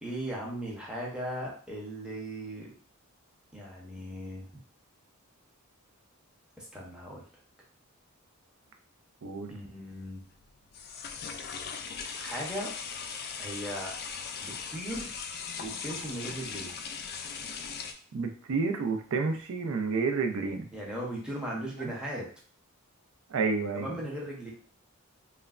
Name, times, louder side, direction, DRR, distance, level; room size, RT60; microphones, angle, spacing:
voice 1, 0.0-2.7 3.5-4.5 6.6-7.2 9.5-10.2 12.2-12.7 13.4-13.9 14.4-15.1 15.6-16.8 20.7-22.3 23.7-24.5, right 1 dB, 5° right, -4 dB, 0.7 m, -37 dB
voice 2, 9.2-9.5 18.1-20.7 23.3-23.9, right 4 dB, 65° right, 5 dB, 0.4 m, -30 dB
sound 1, 9.9-17.9, left 6 dB, 45° left, 0.3 m, -39 dB
3.1 x 2.1 x 2.4 m, 0.43 s
head